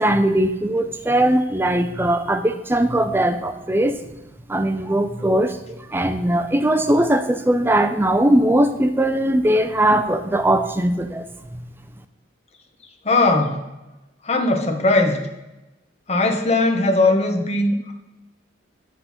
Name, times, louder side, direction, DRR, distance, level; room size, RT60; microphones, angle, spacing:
voice 1, 0.0-3.9 4.5-5.6 5.9-11.2 11.5-11.6, right 1 dB, 10° right, 8 dB, 0.4 m, -19 dB
voice 2, 13.0-13.6 14.2-15.2 16.1-17.9, left 2 dB, 35° left, 5 dB, 0.8 m, -19 dB
9.2 x 3.8 x 5.8 m, 1.0 s
head